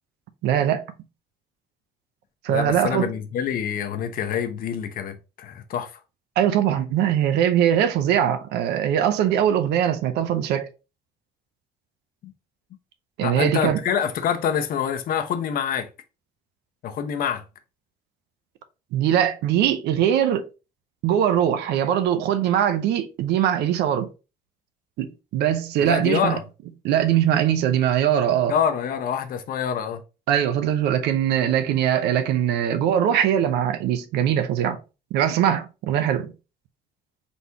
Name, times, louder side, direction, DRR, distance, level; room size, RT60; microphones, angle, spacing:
voice 1, 0.4-0.8 2.4-3.1 6.4-10.7 13.2-13.8 18.9-20.5 21.0-24.1 25.0-26.4 26.8-28.6 30.3-34.8 35.1-36.3, right 10 dB, 85° right, 0.7 m, -21 dB
voice 2, 2.5-6.0 12.2-12.3 13.2-15.9 16.8-17.4 25.8-26.4 28.5-30.0, left 8 dB, 60° left, 0.7 m, -26 dB
4.1 x 3.5 x 2.8 m
cardioid pair, 110°, 17 cm